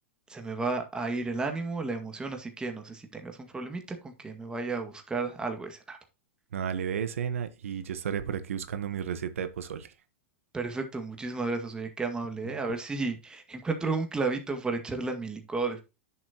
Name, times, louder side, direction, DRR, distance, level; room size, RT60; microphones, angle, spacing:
voice 1, 0.3-6.0 10.5-15.8, right 3 dB, 10° right, 1.9 m, -33 dB
voice 2, 6.5-9.9, right 8 dB, 85° right, 1.1 m, -33 dB
10.0 x 7.2 x 2.9 m
hypercardioid pair, 120°, 7 cm